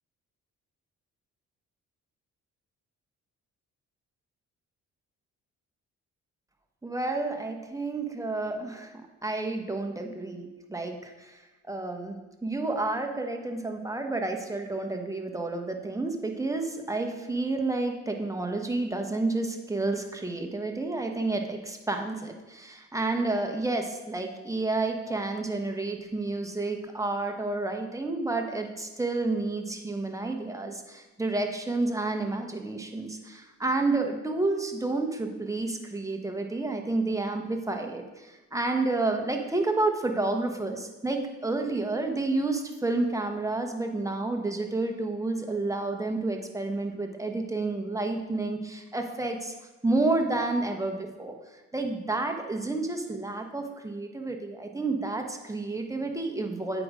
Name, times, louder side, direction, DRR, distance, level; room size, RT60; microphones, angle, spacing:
voice 1, 6.8-8.9 9.2-49.5 49.8-51.3 51.7-56.8, right 2 dB, 10° right, 3 dB, 1.1 m, -30 dB
8.5 x 5.0 x 5.0 m, 1.1 s
cardioid pair, 90°, 30 cm